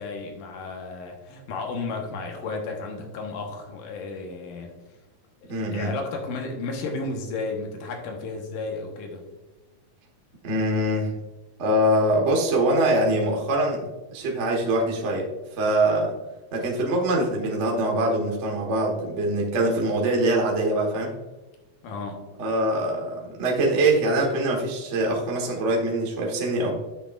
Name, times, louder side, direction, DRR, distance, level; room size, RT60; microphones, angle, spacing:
voice 1, 0.0-4.7 5.5-9.2 15.9-16.0 21.8-22.3, left 3 dB, 85° left, 2 dB, 2.8 m, -33 dB
voice 2, 5.5-5.9 10.4-11.1 11.6-13.8 14.1-16.1 16.5-21.1 22.4-26.7, right 1 dB, 65° right, -1 dB, 0.6 m, -23 dB
9.5 x 6.6 x 2.4 m, 1.1 s
omnidirectional pair, 3.7 m